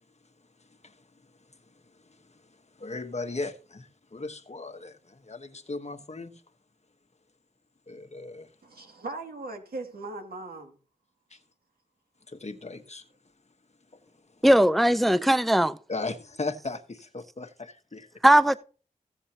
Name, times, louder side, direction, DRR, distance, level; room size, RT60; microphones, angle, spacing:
voice 1, 1.9-2.4 2.8-6.3 7.9-8.5 11.3-11.4 12.3-13.0 15.9-18.1, left 3 dB, 45° left, 1.3 m, -37 dB
voice 2, 8.6-10.8 11.3-11.4, right 2 dB, 85° right, 2.3 m, -39 dB
voice 3, 14.4-15.8 18.2-18.6, right 1 dB, ahead, 0.5 m, -19 dB
15.5 x 7.3 x 2.8 m
cardioid pair, 50°, 15 cm